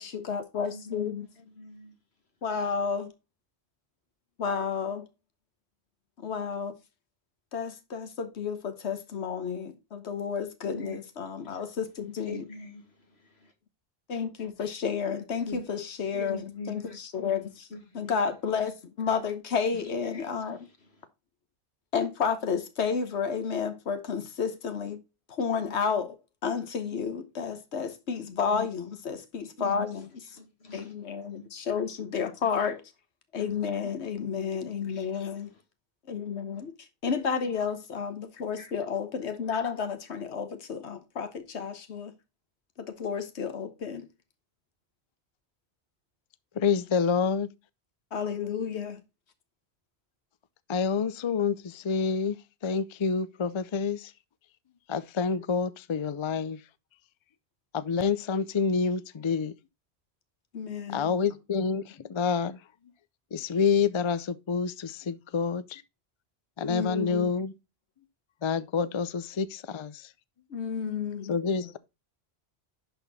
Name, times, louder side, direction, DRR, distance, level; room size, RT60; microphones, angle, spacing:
voice 1, 0.0-1.3 2.4-3.1 4.4-5.1 6.2-6.8 7.5-12.5 14.1-17.7 17.9-20.6 21.9-25.0 25.3-26.2 26.4-30.1 30.7-32.8 33.3-35.5 36.1-36.7 37.0-42.1 42.8-44.1 48.1-49.0 60.5-61.1 66.7-67.3 70.5-71.3 71.6-71.7, left 6 dB, 90° left, 1.3 m, -31 dB
voice 2, 0.6-1.1 1.4-1.9 10.7-11.0 11.4-11.9 12.2-13.5 15.5-15.6 16.1-17.0 17.7-18.1 19.7-19.8 20.1-21.1 28.5-28.7 29.6-29.9 30.3-30.9 31.2-31.5 35.2-35.6 36.5-36.6 38.6-38.7, left 3 dB, 70° left, 2.2 m, -43 dB
voice 3, 46.6-47.5 50.7-52.4 52.6-54.1 54.9-56.6 57.7-59.5 60.9-62.6 63.3-65.8 66.6-67.5 68.4-70.1 71.3-71.8, left 5 dB, 45° left, 0.4 m, -28 dB
11.5 x 4.2 x 4.0 m
omnidirectional pair, 1.1 m